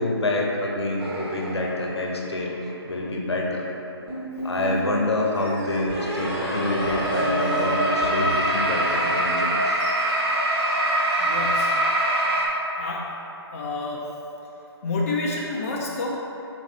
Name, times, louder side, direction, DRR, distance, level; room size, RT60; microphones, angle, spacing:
voice 1, 0.0-2.6 2.8-3.7 4.4-9.8, left 2 dB, 75° left, -1 dB, 0.7 m, -27 dB
sound 1, 1.0-2.2 3.0-3.1 4.6-12.5, right 1 dB, 70° right, 0.7 m, -25 dB
sound 2, 4.1-4.9 5.9-9.2, equal, 10° left, 1.1 m, -32 dB
sound 3, 5.3-11.3, right 1 dB, 15° right, 1.1 m, -42 dB
voice 2, 11.2-11.8 12.7-13.2 13.5-14.1 14.8-16.2, left 3 dB, 35° left, -3 dB, 0.3 m, -29 dB
3.6 x 3.1 x 3.6 m, 3.0 s
figure-of-eight pair, 145°, 14 cm